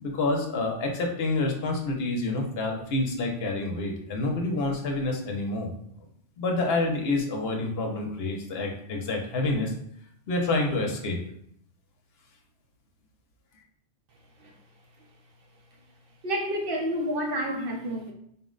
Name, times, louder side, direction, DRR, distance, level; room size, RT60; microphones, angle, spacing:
voice 1, 0.0-5.7 6.4-9.7 10.3-11.2, left 2 dB, 65° left, 0.9 m, -28 dB
voice 2, 16.2-18.1, equal, 60° right, 0.8 m, -29 dB
4.1 x 2.1 x 3.7 m
omnidirectional pair, 1.1 m